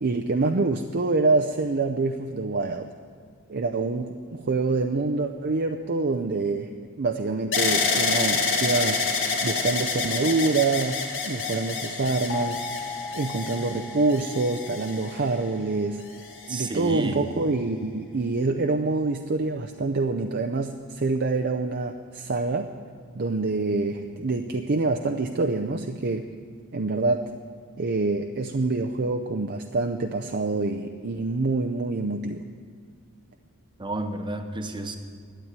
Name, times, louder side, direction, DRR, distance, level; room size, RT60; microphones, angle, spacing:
voice 1, 0.0-2.9 3.5-6.7 7.0-9.0 9.4-16.0 16.5-22.7 23.1-26.3 26.7-27.3 27.8-32.4, right 3 dB, 50° right, 5 dB, 0.6 m, -26 dB
sound 1, 7.5-15.5 16.2-16.9, left 4 dB, 60° left, 2.0 m, -28 dB
sound 2, 12.3-17.0, left 4 dB, 90° left, 1.8 m, -39 dB
voice 2, 16.5-17.3 33.8-35.0, right 2 dB, 20° right, 6 dB, 1.0 m, -31 dB
12.5 x 8.8 x 9.6 m, 2.1 s
head